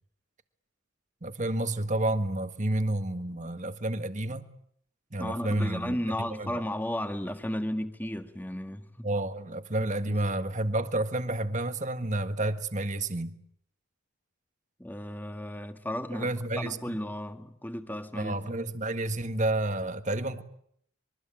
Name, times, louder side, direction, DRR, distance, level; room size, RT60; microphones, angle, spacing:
voice 1, 1.2-4.5 5.1-6.0 6.4-6.5 9.0-13.4 16.1-17.0 18.1-20.4, right 1 dB, 35° right, 1.6 m, -30 dB
voice 2, 5.2-9.1 10.1-10.3 14.8-18.5, left 1 dB, 10° left, 1.7 m, -34 dB
25.5 x 23.0 x 8.8 m
head